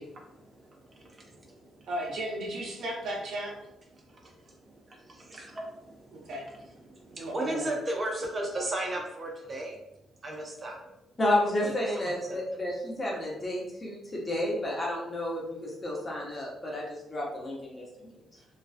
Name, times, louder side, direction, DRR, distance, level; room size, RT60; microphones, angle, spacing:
voice 1, 0.0-1.9 3.9-11.1 11.6-12.6 17.8-18.5, right 1 dB, 35° right, 0 dB, 0.5 m, -38 dB
voice 2, 1.9-3.5 6.1-6.5 7.1-7.7, right 1 dB, 70° right, -2 dB, 0.7 m, -35 dB
voice 3, 11.2-17.9, left 1 dB, 25° left, -3 dB, 0.7 m, -31 dB
2.4 x 2.2 x 2.4 m, 0.87 s
cardioid pair, 105°, 0 cm